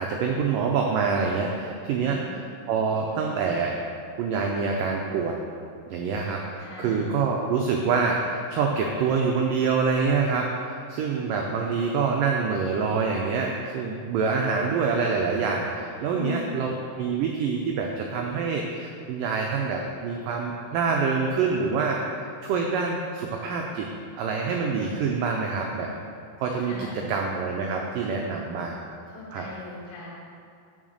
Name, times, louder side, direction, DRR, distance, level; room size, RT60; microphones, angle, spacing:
voice 1, 0.0-2.2 2.7-3.7 4.2-5.4 5.9-22.0 22.4-23.9 24.2-25.9 26.4-28.8 29.3-29.4, right 5 dB, 85° right, 0 dB, 1.9 m, -26 dB
voice 2, 1.9-2.3 6.6-7.0 16.1-16.6 26.6-27.1 29.1-30.1, left 2 dB, 70° left, -4 dB, 3.7 m, -38 dB
7.5 x 6.0 x 6.4 m, 2.3 s
omnidirectional pair, 4.7 m